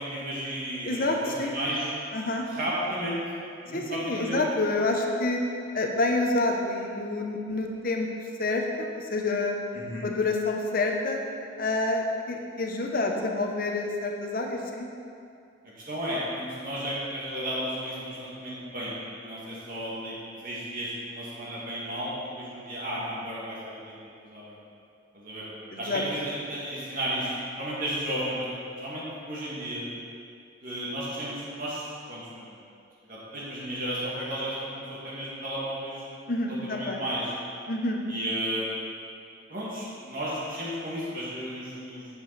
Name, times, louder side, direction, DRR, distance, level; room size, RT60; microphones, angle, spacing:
voice 1, 0.0-1.9 2.5-3.2 3.6-4.4 9.7-10.1 15.8-18.9 19.2-20.2 20.4-24.6 25.1-25.5 25.8-29.8 30.6-32.6 33.0-36.0 36.5-37.3 38.1-38.8 39.5-42.1, equal, 45° right, -7 dB, 2.1 m, -33 dB
voice 2, 0.8-1.5 2.1-2.4 3.7-5.4 5.7-8.1 8.4-9.5 10.0-11.2 11.6-14.9 25.7-26.0 36.3-37.0 37.7-38.0, left 2 dB, 45° left, 2 dB, 0.9 m, -28 dB
9.9 x 7.1 x 4.1 m, 2.5 s
head